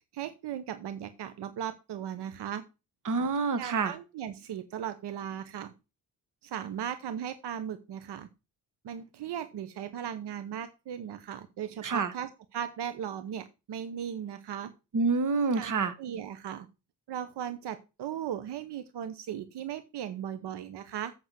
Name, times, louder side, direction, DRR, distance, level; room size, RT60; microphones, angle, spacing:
voice 1, 0.1-2.6 3.6-5.7 6.4-8.3 8.8-14.7 15.5-15.7 16.0-16.7 17.1-21.1, right 9 dB, 80° right, 11 dB, 1.0 m, -37 dB
voice 2, 3.0-3.9 11.8-12.1 14.9-15.9, right 4 dB, 50° right, 11 dB, 1.5 m, -27 dB
8.1 x 5.9 x 7.6 m, 0.29 s
cardioid pair, 135°, 40 cm